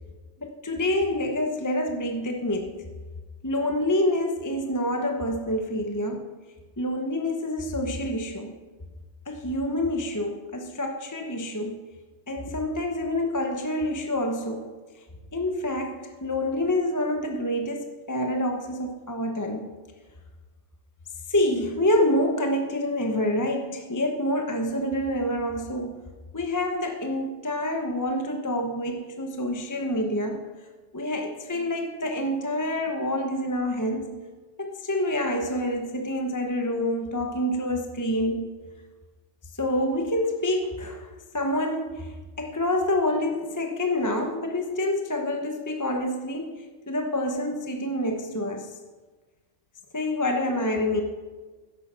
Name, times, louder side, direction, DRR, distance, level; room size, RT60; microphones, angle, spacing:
voice 1, 0.4-2.8 3.4-6.2 6.8-8.5 9.3-11.8 12.3-14.7 15.3-19.7 21.3-26.0 26.3-30.4 30.9-34.1 34.6-38.5 39.6-41.1 41.3-48.8 49.9-51.0, left 1 dB, 15° left, 3 dB, 1.0 m, -27 dB
13.5 x 10.5 x 5.6 m, 1.3 s
omnidirectional pair, 1.2 m